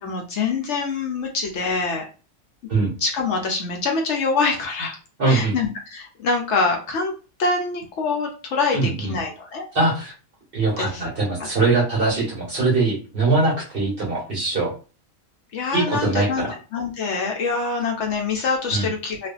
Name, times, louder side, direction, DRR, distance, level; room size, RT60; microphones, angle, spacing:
voice 1, 0.0-2.1 3.0-5.0 5.3-7.1 7.4-9.7 10.8-11.1 11.4-11.5 15.5-16.5 16.7-19.3, left 4 dB, 70° left, 1 dB, 0.9 m, -25 dB
voice 2, 5.2-5.5 8.7-9.2 9.7-10.1 10.5-14.7 15.7-16.5 18.7-18.9, right 3 dB, 50° right, -3 dB, 1.1 m, -22 dB
2.5 x 2.4 x 2.3 m, 0.34 s
omnidirectional pair, 1.3 m